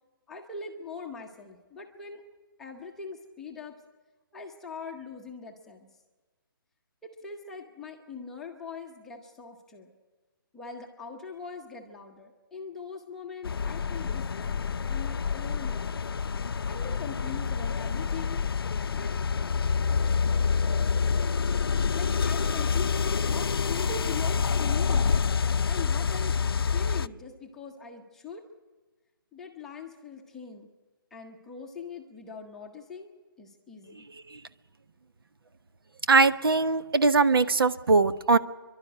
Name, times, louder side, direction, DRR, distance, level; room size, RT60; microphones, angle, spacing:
voice 1, 0.3-2.2 2.6-3.7 4.3-5.9 7.0-9.9 10.5-16.0 16.7-18.4 18.9-19.1 21.9-25.1 25.7-26.4 26.7-28.4 29.3-30.7 31.1-34.1, left 5 dB, 5° left, 0 dB, 0.8 m, -41 dB
sound 1, 13.4-27.1, left 5 dB, 80° left, 0.6 m, -27 dB
voice 2, 36.1-38.4, right 3 dB, 75° right, 11 dB, 1.1 m, -21 dB
28.5 x 12.0 x 9.8 m, 1.3 s
hypercardioid pair, 175°, 12 cm